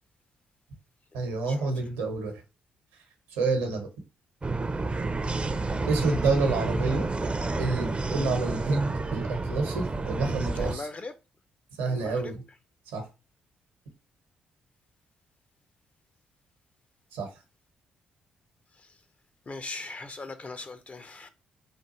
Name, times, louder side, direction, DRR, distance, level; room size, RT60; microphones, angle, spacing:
voice 1, 1.1-2.3 3.4-3.9 5.9-7.1 7.6-10.9 11.8-12.4 12.9-13.0 17.1-17.3, right 3 dB, 80° right, 0.9 m, -28 dB
sound 1, 4.4-10.7, right 3 dB, 25° right, 0.5 m, -30 dB
voice 2, 10.6-11.1 11.8-12.3 18.8-18.9 19.5-21.3, left 3 dB, 35° left, 0.5 m, -39 dB
3.3 x 2.4 x 2.9 m
hypercardioid pair, 40°, 4 cm